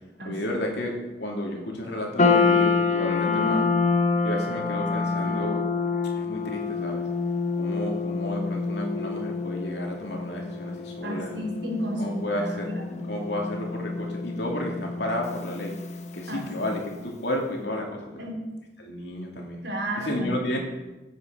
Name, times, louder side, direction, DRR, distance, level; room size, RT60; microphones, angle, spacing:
voice 1, 0.2-3.7 4.2-5.6 6.1-7.0 7.6-11.4 12.0-12.7 13.1-15.7 16.1-18.1 18.8-19.6 20.0-20.6, left 1 dB, 75° left, 0 dB, 2.7 m, -32 dB
sound 1, 2.2-16.6, left 4 dB, 40° left, 0.9 m, -27 dB
voice 2, 3.2-3.6 5.2-5.4 11.0-13.0 16.3-16.8 18.2-18.4 19.6-20.6, equal, 80° right, 0 dB, 3.4 m, -32 dB
15.5 x 8.3 x 5.1 m, 1.1 s
head